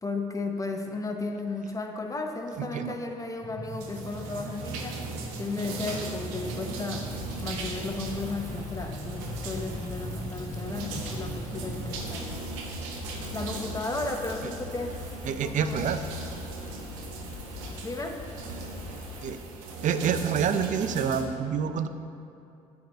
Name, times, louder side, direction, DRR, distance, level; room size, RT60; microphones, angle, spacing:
voice 1, 0.0-5.0 5.4-7.1 7.4-12.5 13.3-15.9 17.8-18.2, left 3 dB, 20° left, 4 dB, 0.9 m, -34 dB
voice 2, 2.6-2.9 14.4-14.5 15.2-16.0 19.2-19.4 19.8-21.9, right 7 dB, 50° right, 10 dB, 0.5 m, -27 dB
sound 1, 3.4-11.9, right 1 dB, 5° right, 1.6 m, -40 dB
sound 2, 3.7-21.2, right 3 dB, 75° right, 0.9 m, -39 dB
Rain, 7.0-19.3, left 4 dB, 45° left, 1.3 m, -42 dB
8.9 x 3.6 x 6.5 m, 2.7 s
hypercardioid pair, 55°, 17 cm